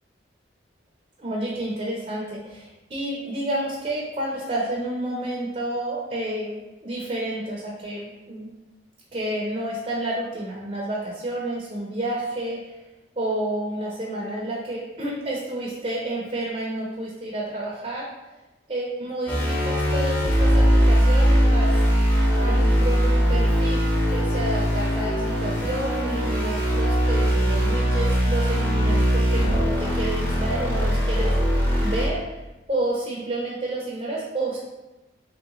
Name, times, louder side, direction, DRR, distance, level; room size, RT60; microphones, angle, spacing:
voice 1, 1.2-8.5 9.1-12.8 13.2-18.4 18.7-22.1 22.4-32.4 32.7-34.6, right 1 dB, 35° right, -4 dB, 0.6 m, -30 dB
sound 1, 19.3-32.1, equal, 10° left, 0.7 m, -21 dB
3.4 x 2.9 x 3.7 m, 1.0 s
head